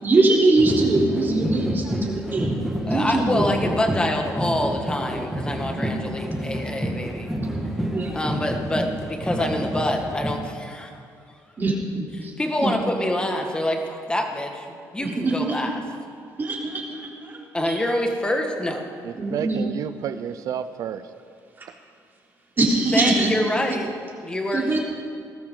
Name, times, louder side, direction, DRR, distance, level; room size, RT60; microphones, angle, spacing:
voice 1, 0.0-2.6 2.9-3.5 5.6-5.8 6.9-7.1 7.5-8.2 11.6-12.3 12.6-12.7 15.0-15.7 16.4-17.4 17.7-17.8 19.2-19.7 22.6-23.3 24.5-24.8, right 2 dB, 35° right, -2 dB, 3.5 m, -23 dB
sound 1, 0.6-10.3, right 1 dB, ahead, 2.2 m, -28 dB
voice 2, 2.9-7.3 8.1-10.9 12.2-15.8 17.5-18.8 22.6-23.9 24.2-24.8, left 1 dB, 15° left, 3 dB, 1.8 m, -26 dB
voice 3, 19.0-21.0, right 9 dB, 65° right, 12 dB, 0.6 m, -30 dB
20.0 x 13.5 x 3.9 m, 2.4 s
cardioid pair, 105°, 6 cm